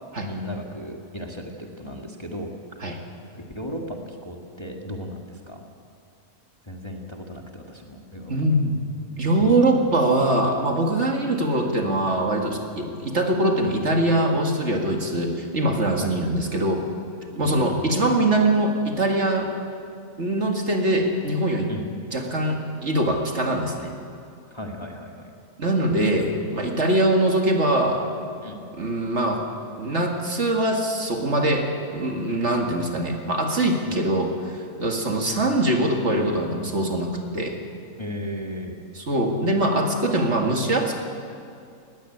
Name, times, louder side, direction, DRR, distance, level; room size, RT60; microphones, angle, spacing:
voice 1, 0.2-2.5 2.8-3.0 3.3-5.6 6.6-8.5 9.4-9.5 12.8-12.9 16.0-16.4 17.4-17.9 21.7-21.8 24.5-25.3 28.4-28.6 33.8-34.0 38.0-38.8, equal, 20° left, 1 dB, 1.7 m, -36 dB
voice 2, 8.3-8.8 9.2-16.8 17.4-19.5 20.2-21.7 22.1-23.9 25.6-28.1 28.8-29.5 29.8-37.6 39.0-41.0, right 1 dB, 50° right, 2 dB, 2.3 m, -23 dB
18.5 x 15.0 x 10.0 m, 2.4 s
omnidirectional pair, 1.6 m